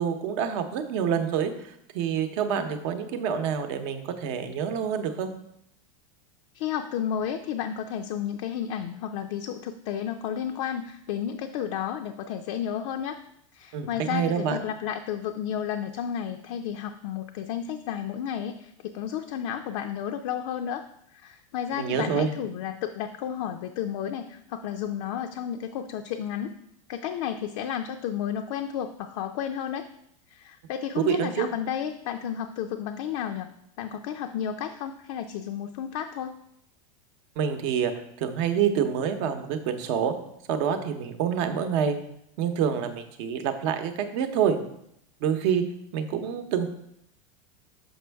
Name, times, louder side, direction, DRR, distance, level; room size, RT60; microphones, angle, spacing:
voice 1, 0.0-5.3 13.7-14.6 21.7-22.3 31.0-31.5 37.4-37.9 38.2-40.1 40.5-41.9 42.4-44.6 45.2-45.6 45.9-46.7, right 8 dB, 55° right, 8 dB, 0.8 m, -27 dB
voice 2, 6.5-13.2 13.5-20.8 21.1-26.5 26.9-29.8 30.3-33.5 33.8-36.4, left 9 dB, 60° left, 5 dB, 0.5 m, -32 dB
6.3 x 5.3 x 3.4 m, 0.74 s
supercardioid pair, 140°, 18 cm